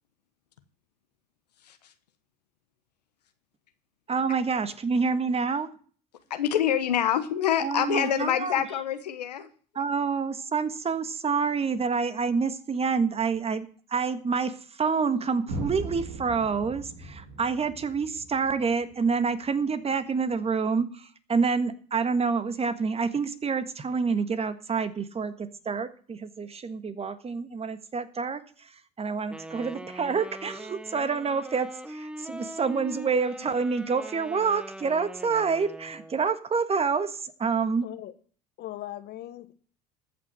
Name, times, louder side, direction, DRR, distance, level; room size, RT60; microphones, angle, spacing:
voice 1, 4.1-5.7 7.6-8.6 9.7-37.9, right 5 dB, 30° right, 11 dB, 1.5 m, -28 dB
voice 2, 6.3-9.5, left 9 dB, 90° left, 9 dB, 1.2 m, -26 dB
sound 1, 15.5-19.4, right 2 dB, 70° right, 2.8 m, -39 dB
Wind instrument woodwind instrument, 29.3-36.3, right 1 dB, 5° right, 1.0 m, -42 dB
voice 3, 37.8-38.1 38.6-39.5, left 14 dB, 55° left, 12 dB, 1.4 m, -39 dB
14.0 x 6.0 x 7.7 m, 0.44 s
hypercardioid pair, 65°, 20 cm